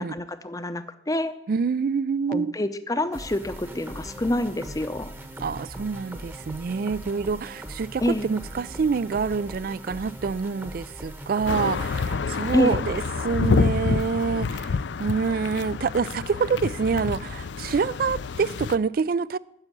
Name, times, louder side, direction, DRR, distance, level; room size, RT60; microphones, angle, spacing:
voice 1, 0.0-1.3 2.3-5.1 8.0-8.3 12.5-12.8, left 1 dB, 20° left, 0.6 m, -27 dB
voice 2, 1.5-2.5 5.4-19.4, right 5 dB, 50° right, 0.3 m, -26 dB
sound 1, 3.1-13.6, right 1 dB, 10° right, 1.0 m, -40 dB
sound 2, 11.5-18.8, left 5 dB, 70° left, 0.4 m, -28 dB
9.8 x 7.2 x 9.0 m
head